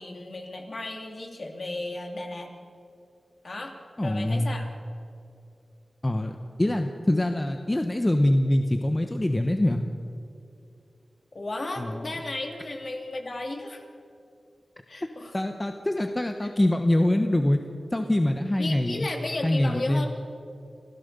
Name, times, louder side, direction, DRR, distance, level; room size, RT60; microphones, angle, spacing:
voice 1, 0.0-2.5 3.4-3.7 4.0-4.7 11.3-13.8 14.9-15.4 16.4-16.5 18.6-20.1, left 2 dB, 50° left, 3 dB, 2.9 m, -34 dB
voice 2, 4.0-4.5 6.0-6.3 6.6-9.8 11.8-12.1 15.3-17.6 17.9-19.1 19.4-20.0, left 1 dB, 20° left, 6 dB, 1.1 m, -24 dB
27.5 x 15.0 x 6.9 m, 2.6 s
wide cardioid pair, 85°, 0 cm